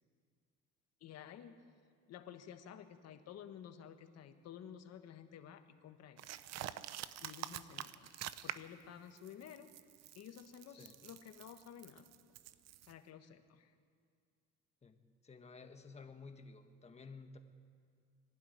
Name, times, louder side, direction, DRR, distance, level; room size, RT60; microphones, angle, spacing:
voice 1, 1.0-1.5 2.1-6.4 7.2-9.8 10.1-12.0 12.9-13.7, left 9 dB, 60° left, 7 dB, 1.6 m, -53 dB
sound 1, 6.2-8.8 9.2-12.9, right 12 dB, 60° right, 0.7 m, -47 dB
voice 2, 15.2-17.4, left 4 dB, 20° left, 6 dB, 1.5 m, -53 dB
23.5 x 12.0 x 9.4 m, 2.1 s
cardioid pair, 125°, 29 cm